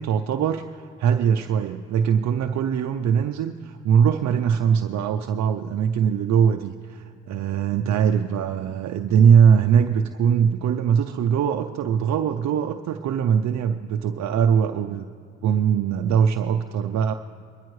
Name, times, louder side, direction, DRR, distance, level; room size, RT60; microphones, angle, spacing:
voice 1, 0.0-15.1 15.4-17.1, right 7 dB, 65° right, 5 dB, 0.5 m, -21 dB
22.0 x 14.0 x 3.1 m, 2.3 s
cardioid pair, 90°, 30 cm